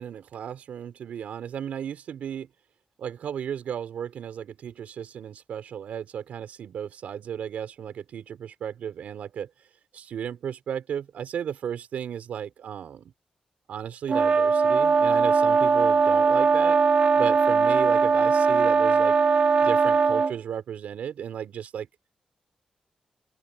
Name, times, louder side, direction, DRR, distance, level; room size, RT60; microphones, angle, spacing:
voice 1, 0.0-2.5 3.0-9.5 9.9-13.1 13.7-16.8 17.2-19.2 19.6-21.9, right 8 dB, 85° right, 5.2 m, -34 dB
sound 1, 14.1-20.3, right 5 dB, 50° right, 1.6 m, -20 dB
open air
cardioid pair, 100°, 2 cm